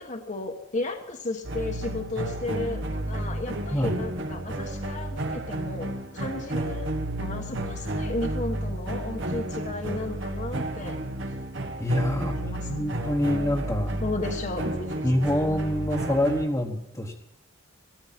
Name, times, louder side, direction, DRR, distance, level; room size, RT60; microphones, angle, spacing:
voice 1, 0.0-6.9 7.2-11.0 12.2-13.1 14.0-15.1, left 2 dB, 40° left, 3 dB, 1.3 m, -34 dB
sound 1, 1.4-16.5, right 1 dB, 65° right, 1.7 m, -32 dB
voice 2, 11.8-14.0 15.0-17.1, left 1 dB, 15° left, -2 dB, 1.3 m, -26 dB
17.5 x 14.0 x 5.9 m, 0.84 s
head